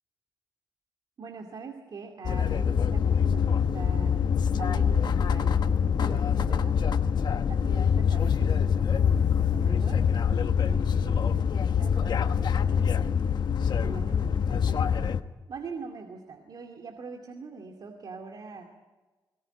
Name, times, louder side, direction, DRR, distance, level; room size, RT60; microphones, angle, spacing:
voice 1, 1.2-4.2 4.6-6.8 7.5-10.0 10.6-13.1 13.8-15.2 15.5-18.7, right 4 dB, 60° right, 3 dB, 2.4 m, -43 dB
sound 1, 2.2-15.2, left 7 dB, 65° left, 1.2 m, -25 dB
22.5 x 19.0 x 9.0 m, 1.3 s
cardioid pair, 105°, 8 cm